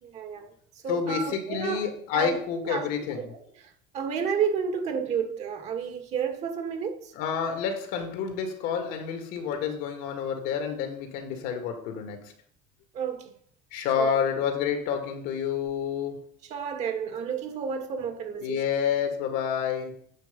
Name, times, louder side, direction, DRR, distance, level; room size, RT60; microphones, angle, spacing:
voice 1, 0.0-0.5 0.8-1.9 2.1-2.9 3.1-7.1 12.9-13.3 14.0-14.1 16.4-18.6, right 7 dB, 45° right, 1.9 m, -31 dB
voice 2, 0.9-3.3 7.2-12.3 13.7-16.2 18.4-19.9, left 7 dB, 70° left, 2.2 m, -29 dB
9.2 x 6.8 x 5.3 m
cardioid pair, 140°, 16 cm